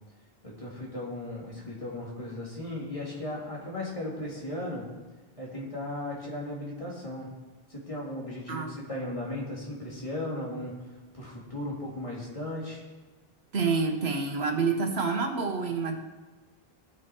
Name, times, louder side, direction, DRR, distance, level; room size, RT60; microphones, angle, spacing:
voice 1, 0.4-4.9 5.4-7.3 7.7-10.7 11.1-12.8, left 1 dB, 30° left, -4 dB, 2.6 m, -36 dB
voice 2, 13.5-16.0, right 4 dB, 85° right, 4 dB, 1.5 m, -28 dB
17.5 x 6.3 x 4.5 m, 1.2 s
omnidirectional pair, 1.0 m